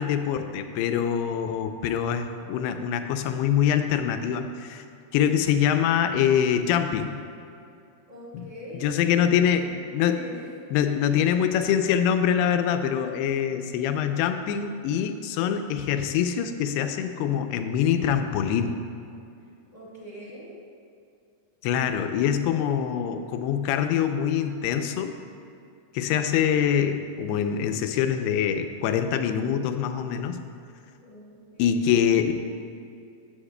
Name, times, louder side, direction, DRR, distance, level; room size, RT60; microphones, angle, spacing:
voice 1, 0.0-4.8 5.1-7.2 8.3-8.5 8.7-10.2 10.7-18.8 21.6-25.1 25.9-30.4 31.6-32.3, left 8 dB, 90° left, 7 dB, 2.5 m, -24 dB
voice 2, 8.1-9.5 10.1-10.4 10.8-11.1 19.7-20.5 31.0-32.0, left 1 dB, 45° left, -8 dB, 0.4 m, -43 dB
14.5 x 8.6 x 2.2 m, 2.6 s
omnidirectional pair, 4.5 m